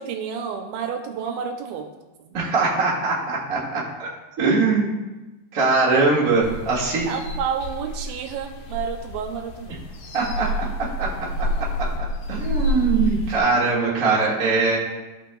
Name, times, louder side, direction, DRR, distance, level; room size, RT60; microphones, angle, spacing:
voice 1, 0.0-1.9 2.2-2.3 7.1-9.8, right 7 dB, 85° right, 5 dB, 2.4 m, -30 dB
voice 2, 2.3-4.1 4.4-4.9 5.5-7.1 10.1-10.5 11.0-11.1 11.6-11.7 12.3-14.8, right 3 dB, 50° right, -5 dB, 0.9 m, -21 dB
sound 1, 6.4-13.4, equal, 75° left, 1.8 m, -29 dB
13.5 x 5.4 x 2.3 m, 1.1 s
omnidirectional pair, 4.3 m